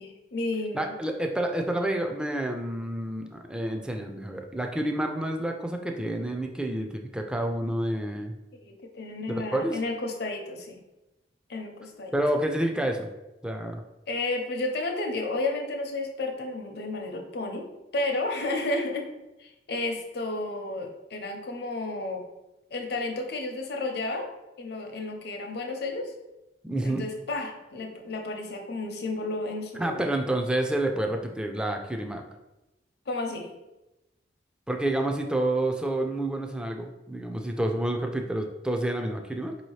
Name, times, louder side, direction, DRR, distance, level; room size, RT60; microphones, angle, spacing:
voice 1, 0.0-1.0 8.6-10.8 11.5-12.1 14.1-17.7 17.9-19.1 19.4-22.2 22.7-24.3 24.6-26.1 26.8-30.1 33.1-33.5, left 2 dB, 65° left, 3 dB, 0.7 m, -32 dB
voice 2, 0.7-8.3 9.3-9.8 12.1-13.1 13.4-13.8 26.6-27.0 29.8-32.2 34.7-39.6, right 1 dB, 5° right, 3 dB, 0.3 m, -29 dB
4.7 x 2.8 x 3.1 m, 0.98 s
head